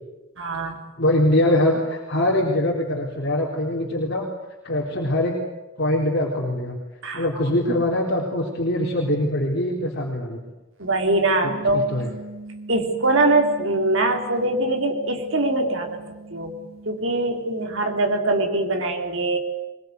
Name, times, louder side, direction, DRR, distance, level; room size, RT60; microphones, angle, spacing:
voice 1, 0.4-0.8 7.0-7.2 10.8-11.9 12.7-16.0 16.3-16.5 16.9-19.4, right 2 dB, 60° right, 4 dB, 3.5 m, -22 dB
voice 2, 1.0-4.3 4.6-5.4 5.8-6.8 7.1-10.4 11.4-12.1, left 1 dB, 50° left, -2 dB, 3.7 m, -23 dB
sound 1, 11.4-17.9, right 2 dB, 85° right, 3.1 m, -41 dB
23.0 x 22.0 x 9.4 m, 1.1 s
head